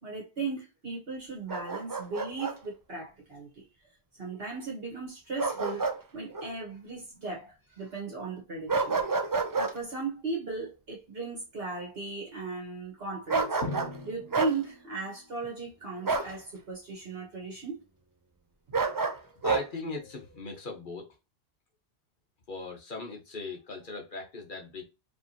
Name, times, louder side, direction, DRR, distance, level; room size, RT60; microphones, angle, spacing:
voice 1, 0.0-3.6 4.2-9.0 9.6-13.6 14.0-17.8, right 3 dB, 65° right, 1.6 m, -37 dB
Bark, 1.5-2.6 5.4-6.0 6.3-6.5 8.7-9.7 13.3-14.0 14.3-14.6 16.1-16.3 18.7-19.6, right 4 dB, 35° right, 0.3 m, -29 dB
Drum, 13.6-15.5, left 2 dB, 85° left, 1.2 m, -41 dB
voice 2, 19.2-21.1 22.5-24.8, left 3 dB, 50° left, 1.2 m, -39 dB
4.8 x 3.3 x 2.8 m
omnidirectional pair, 1.1 m